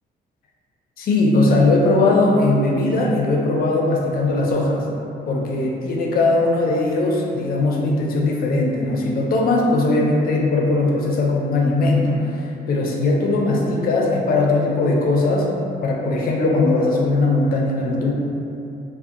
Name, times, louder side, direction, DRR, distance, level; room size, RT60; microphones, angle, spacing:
voice 1, 1.0-4.9 5.3-15.5 15.8-18.1, left 2 dB, 55° left, -2 dB, 0.4 m, -19 dB
2.6 x 2.0 x 2.4 m, 2.7 s
cardioid pair, 115°, 18 cm